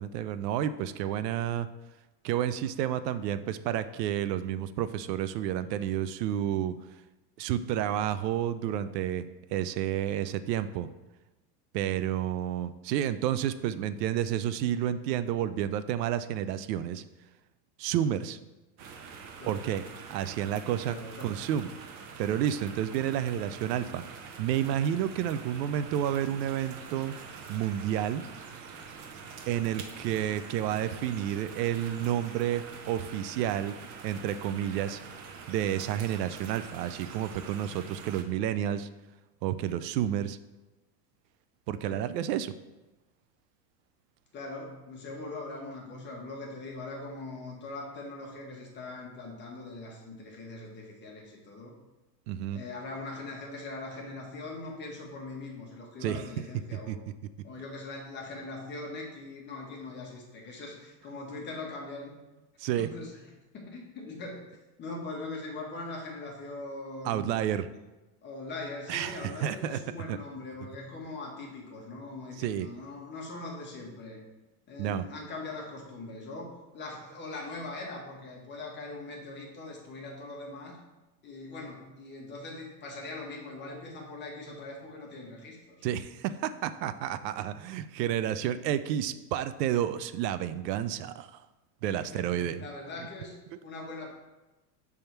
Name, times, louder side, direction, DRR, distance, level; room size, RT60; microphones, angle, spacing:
voice 1, 0.0-1.7 2.2-6.7 7.4-9.2 9.5-10.9 11.7-17.0 17.8-18.4 19.5-19.8 20.1-21.7 22.2-24.0 24.4-27.1 27.5-28.2 29.5-33.8 34.0-35.0 35.5-38.9 39.4-40.4 41.7-42.5 52.3-52.6 56.0-56.2 56.7-57.0 62.6-62.9 67.0-67.7 68.9-69.8 70.1-70.2 72.4-72.7 74.8-75.1 85.8-91.4 91.8-92.6, right 11 dB, 85° right, 13 dB, 0.6 m, -30 dB
sound 1, 18.8-38.2, right 5 dB, 40° right, 0.7 m, -45 dB
voice 2, 20.8-21.4 41.8-42.0 44.3-51.8 52.5-56.9 57.4-62.1 62.8-63.2 63.5-64.4 64.8-67.5 68.2-74.2 74.7-80.8 81.2-85.8 91.9-93.3 93.6-94.1, left 2 dB, 20° left, -1 dB, 1.2 m, -41 dB
6.8 x 3.6 x 4.5 m, 1.1 s
supercardioid pair, 155°, 48 cm